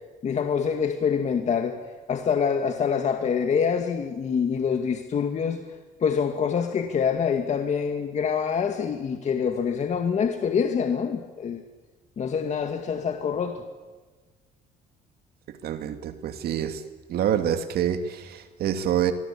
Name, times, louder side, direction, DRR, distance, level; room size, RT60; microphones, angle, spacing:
voice 1, 0.2-1.7 2.1-5.6 6.0-11.6 12.2-13.6, left 6 dB, 45° left, 5 dB, 2.1 m, -25 dB
voice 2, 15.6-16.8 17.1-19.1, right 9 dB, 65° right, 8 dB, 2.4 m, -26 dB
26.0 x 23.0 x 8.6 m, 1.3 s
cardioid pair, 110°, 17 cm